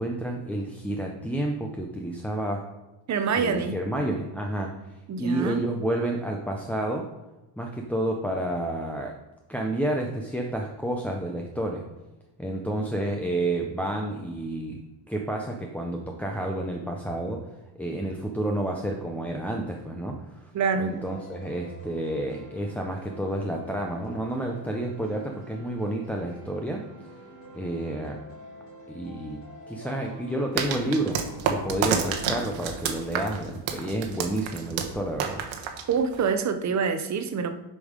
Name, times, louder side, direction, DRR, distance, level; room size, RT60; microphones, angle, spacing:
voice 1, 0.0-2.7 3.4-4.7 5.2-7.1 7.6-9.2 9.5-11.8 12.4-14.8 15.1-17.5 17.8-20.5 20.8-26.8 27.5-28.2 28.9-29.4 29.7-35.4, right 1 dB, 5° left, 0 dB, 0.5 m, -30 dB
voice 2, 3.1-3.8 5.1-5.7 20.5-21.0 35.9-37.6, right 5 dB, 40° right, 8 dB, 0.7 m, -26 dB
sound 1, 20.6-32.4, equal, 70° left, 2.5 m, -46 dB
sound 2, 30.6-36.3, right 7 dB, 85° right, 1.2 m, -29 dB
8.2 x 5.4 x 5.1 m, 1.1 s
cardioid pair, 165°, 45 cm